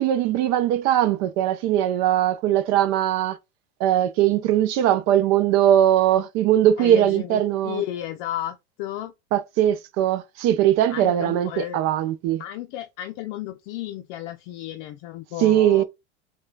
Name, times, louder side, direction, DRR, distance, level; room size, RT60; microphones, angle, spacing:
voice 1, 0.0-3.4 3.8-7.8 9.3-12.4 15.4-15.8, right 11 dB, 50° right, 0.5 m, -20 dB
voice 2, 6.8-9.1 10.9-11.8 12.4-15.8, left 12 dB, 50° left, 0.5 m, -33 dB
4.8 x 2.3 x 2.2 m
hypercardioid pair, 95°, 36 cm